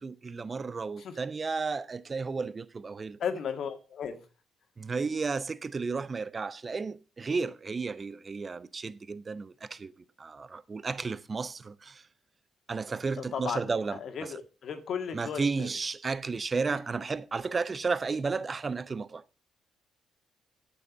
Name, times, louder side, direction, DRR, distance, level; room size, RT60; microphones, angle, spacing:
voice 1, 0.0-3.2 4.8-9.9 10.2-12.0 12.7-14.3 15.1-19.2, right 4 dB, 40° right, 0.7 m, -33 dB
voice 2, 3.2-4.2 13.3-13.7 14.0-15.7, left 7 dB, 65° left, 1.8 m, -35 dB
8.4 x 7.1 x 7.0 m
supercardioid pair, 55°, 0 cm